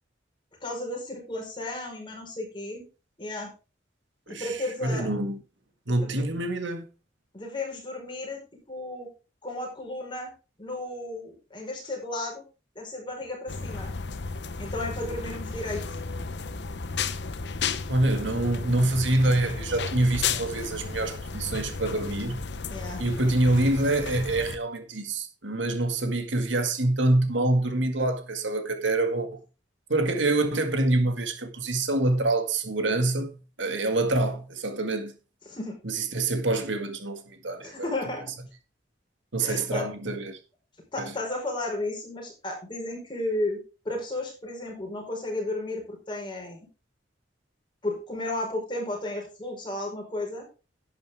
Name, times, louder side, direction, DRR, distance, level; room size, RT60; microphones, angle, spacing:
voice 1, 0.6-2.8 3.2-3.5 4.3-5.1 5.9-6.3 7.3-8.4 8.7-9.1 9.4-10.3 10.6-12.4 12.7-13.9 14.6-16.0 22.7-23.0 35.4-35.8 37.6-38.3 39.4-39.9 40.9-43.6 43.8-46.7 47.8-50.5, left 2 dB, 25° left, 4.9 m, -33 dB
voice 2, 4.3-5.4 5.9-6.8 17.9-22.5 23.0-29.4 29.9-35.1 35.8-37.9 39.3-40.4 41.0-41.1, right 2 dB, 85° right, 2.0 m, -26 dB
sound 1, 13.5-24.6, left 5 dB, 65° left, 0.9 m, -33 dB
11.0 x 9.5 x 3.6 m
head